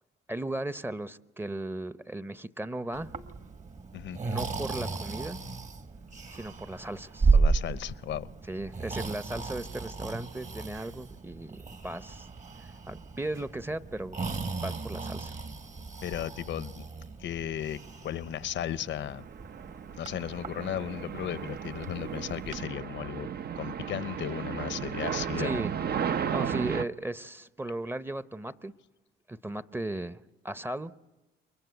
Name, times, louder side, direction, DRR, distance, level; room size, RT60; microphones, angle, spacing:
voice 1, 0.3-3.1 4.2-5.4 6.3-7.4 8.5-12.3 12.6-14.2 14.6-15.3 25.4-25.7 26.3-28.7 29.3-30.9, right 1 dB, 10° right, 0.8 m, -36 dB
Breathing, 2.9-22.6, right 4 dB, 35° right, 1.7 m, -34 dB
voice 2, 7.3-8.3 16.0-16.8 17.2-19.2 20.0-23.3 23.6-25.6, left 11 dB, 70° left, 0.8 m, -35 dB
Explosion, 10.7-11.1 13.3-13.6, right 6 dB, 70° right, 3.4 m, -58 dB
sound 1, 19.0-26.8, right 8 dB, 55° right, 0.8 m, -34 dB
29.0 x 23.0 x 8.2 m
cardioid pair, 90°, 20 cm